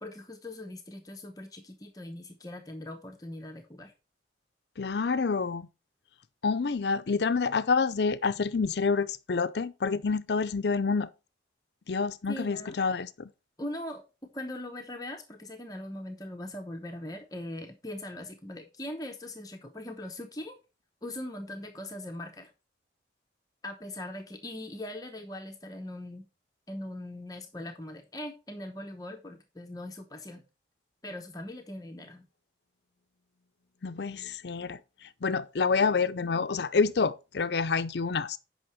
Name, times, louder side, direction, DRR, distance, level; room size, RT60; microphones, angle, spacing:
voice 1, 0.0-3.9 12.3-12.8 13.6-20.6 21.0-22.5 23.6-26.2 26.7-30.4 31.0-32.3, left 1 dB, 20° left, 0.8 m, -40 dB
voice 2, 4.8-5.7 6.4-11.1 11.9-13.3 33.8-34.8 35.2-38.4, left 4 dB, 65° left, 0.5 m, -28 dB
8.8 x 5.7 x 4.5 m
head